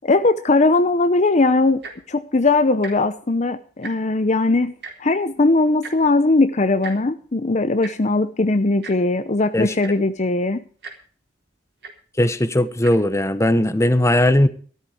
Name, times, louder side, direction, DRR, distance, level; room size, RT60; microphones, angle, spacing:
voice 1, 0.0-1.8 2.1-4.7 5.0-10.6, left 2 dB, 40° left, 11 dB, 0.7 m, -19 dB
Tick-tock, 1.7-2.1 2.7-2.9 3.2-3.4 3.7-4.2 4.8-4.9 5.8-5.9 6.8-7.0 7.8-7.9 8.8-8.9 9.5-9.6 9.8-10.1 10.8-10.9 11.8-11.9 12.7-12.9 13.6-13.7, right 4 dB, 70° right, 3.8 m, -36 dB
voice 2, 12.2-14.5, left 1 dB, 15° left, 12 dB, 1.0 m, -18 dB
14.0 x 13.0 x 4.9 m, 0.43 s
head